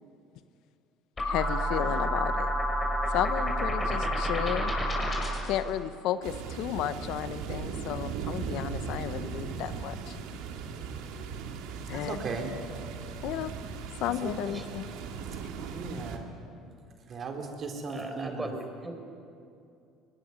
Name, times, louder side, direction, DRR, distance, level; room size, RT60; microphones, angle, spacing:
voice 1, 1.2-2.5 3.1-4.7 5.4-10.2 11.9-12.2 13.2-13.5 14.0-14.9, left 11 dB, 70° left, 12 dB, 1.0 m, -33 dB
sound 1, 1.2-5.6, equal, 20° left, 6.9 m, -29 dB
sound 2, 6.2-16.2, right 6 dB, 75° right, 2.4 m, -38 dB
voice 2, 11.9-12.5 14.0-14.6 15.7-16.2 17.1-18.5, right 4 dB, 45° right, 4 dB, 4.4 m, -37 dB
voice 3, 17.9-19.0, right 2 dB, 15° right, 4 dB, 5.4 m, -38 dB
23.0 x 20.5 x 9.5 m, 2.5 s
supercardioid pair, 80°, 0 cm